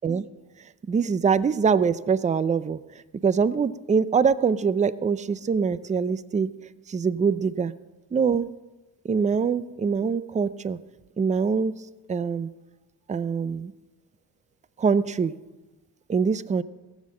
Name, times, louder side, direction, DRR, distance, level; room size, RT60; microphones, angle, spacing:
voice 1, 0.9-2.8 3.2-6.5 6.9-7.7 8.1-8.5 9.0-10.8 11.2-11.7 12.1-12.5 13.1-13.7 14.8-15.3 16.1-16.6, right 6 dB, 20° right, 16 dB, 0.4 m, -23 dB
16.5 x 7.3 x 7.6 m, 1.1 s
cardioid pair, 105°, 37 cm